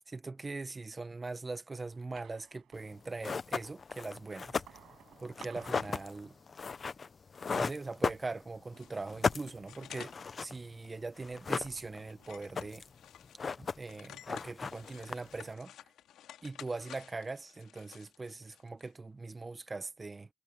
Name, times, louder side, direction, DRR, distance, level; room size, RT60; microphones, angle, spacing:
voice 1, 0.1-4.6 5.2-6.3 7.5-10.1 10.4-12.8 13.6-15.7 16.4-20.3, right 3 dB, 25° right, 1.4 m, -41 dB
sound 1, 1.8-3.5 4.0-7.0 7.3-7.9 8.7-10.6 11.0-13.1, right 11 dB, 75° right, 5.7 m, -60 dB
sound 2, 2.8-2.9 3.2-8.7 9.0-10.6 10.8-10.9 11.2-12.1 12.4-13.0 13.2-14.0 14.2-15.5, left 5 dB, 40° left, 0.8 m, -36 dB
sound 3, 8.7-10.2 10.6-10.7 11.3-11.4 11.8-13.5 13.8-18.9, left 11 dB, 80° left, 2.9 m, -53 dB
cardioid pair, 90°, 0 cm